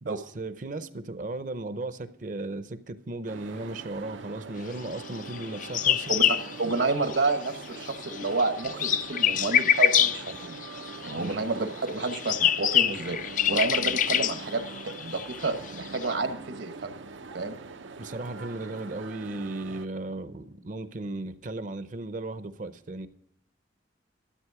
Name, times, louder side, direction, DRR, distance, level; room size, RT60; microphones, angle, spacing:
voice 1, 0.0-6.2 11.1-11.4 18.0-23.1, right 2 dB, 45° right, 0.6 m, -36 dB
sound 1, 3.3-19.9, right 4 dB, 90° right, 0.7 m, -43 dB
sound 2, 5.3-7.5 7.7-11.3 11.9-16.1, left 9 dB, 45° left, 0.4 m, -26 dB
voice 2, 6.6-10.6 11.0-16.9 17.3-17.6, right 3 dB, 75° right, 1.1 m, -30 dB
13.0 x 8.5 x 4.8 m
head